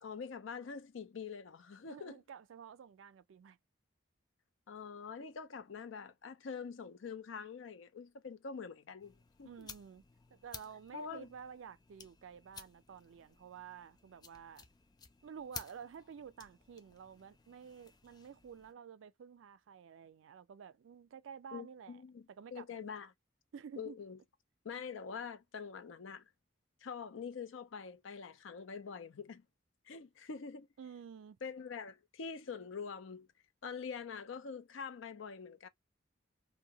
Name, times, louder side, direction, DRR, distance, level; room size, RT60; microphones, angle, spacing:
voice 1, 0.0-2.2 4.7-9.1 9.4-9.7 10.9-11.3 21.5-22.3 22.5-23.1 23.8-24.2 24.6-26.2 26.8-29.4 29.9-30.7 31.4-33.3 33.6-35.7, left 5 dB, 85° left, 0.5 m, -45 dB
voice 2, 1.9-3.6 9.4-10.0 10.3-14.6 15.2-22.0 22.3-22.8 23.5-24.0 30.8-31.4, right 7 dB, 85° right, 0.4 m, -51 dB
sound 1, 9.0-18.7, left 5 dB, 20° left, 0.3 m, -55 dB
2.7 x 2.1 x 2.7 m
head